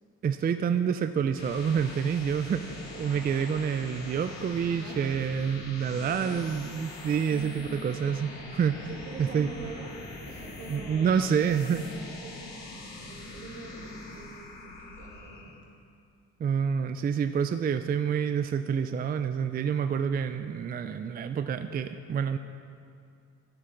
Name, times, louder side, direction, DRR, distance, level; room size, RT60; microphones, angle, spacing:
voice 1, 0.2-8.9 9.2-9.5 10.7-11.8 16.4-22.4, right 7 dB, 30° right, 9 dB, 0.4 m, -28 dB
sound 1, 1.1-15.6, left 2 dB, 65° left, 2.1 m, -43 dB
voice 2, 4.6-5.0 5.8-6.6 7.3-7.8 8.7-9.9 10.3-15.6, right 2 dB, 70° right, -3 dB, 2.7 m, -45 dB
14.5 x 8.2 x 3.9 m, 2.4 s
cardioid pair, 90°, 30 cm